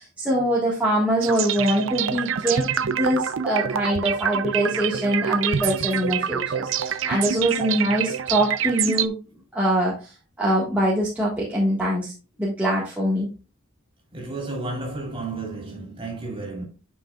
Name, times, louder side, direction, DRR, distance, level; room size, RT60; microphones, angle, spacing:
voice 1, 0.0-9.2 9.5-10.1 10.4-12.1 12.4-13.3, right 1 dB, 5° right, 1.7 m, -23 dB
sound 1, 1.2-9.1, right 8 dB, 70° right, 0.5 m, -26 dB
voice 2, 14.1-16.6, right 2 dB, 25° right, 3.5 m, -32 dB
9.9 x 5.6 x 2.4 m
head